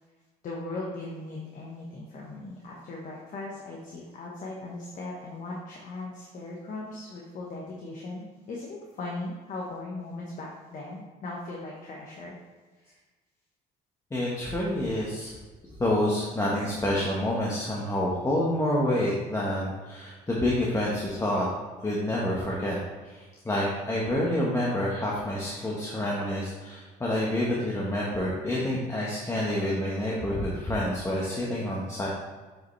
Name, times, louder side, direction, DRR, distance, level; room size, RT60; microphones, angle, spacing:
voice 1, 0.4-12.4 12.8-13.0, left 2 dB, 50° left, -3 dB, 1.2 m, -38 dB
voice 2, 14.1-15.3 15.8-21.5 21.8-32.1, left 1 dB, 15° left, -5 dB, 1.2 m, -28 dB
7.8 x 5.1 x 3.2 m, 1.3 s
cardioid pair, 110°, 17 cm